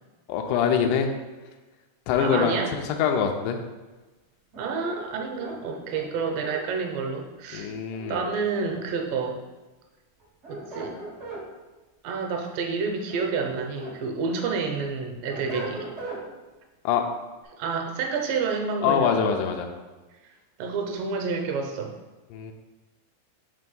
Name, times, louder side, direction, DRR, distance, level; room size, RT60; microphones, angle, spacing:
voice 1, 0.3-1.1 2.1-3.6 7.5-8.2 16.9-17.0 18.8-19.7 22.3-22.5, left 7 dB, 85° left, 4 dB, 1.8 m, -24 dB
voice 2, 2.2-2.7 4.6-7.7 8.1-9.4 10.5-10.9 12.0-15.9 17.6-19.1 20.6-21.9, right 5 dB, 80° right, 2 dB, 2.2 m, -29 dB
sound 1, 4.5-6.6 7.9-9.0 10.2-11.4 12.9-14.0 14.4-16.2, right 2 dB, 60° right, 0.7 m, -38 dB
5.3 x 3.4 x 5.3 m, 1.2 s
omnidirectional pair, 4.2 m